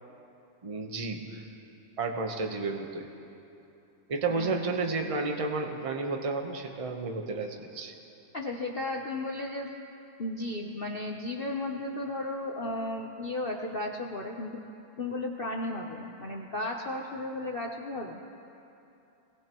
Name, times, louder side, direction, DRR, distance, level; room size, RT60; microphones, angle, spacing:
voice 1, 0.6-1.5 2.0-3.1 4.1-7.9, right 3 dB, 30° right, 3 dB, 0.6 m, -32 dB
voice 2, 4.3-4.8 8.3-9.7 10.2-14.6 15.0-18.2, left 2 dB, 75° left, 0 dB, 0.5 m, -34 dB
24.0 x 19.0 x 3.0 m, 2.8 s
omnidirectional pair, 2.2 m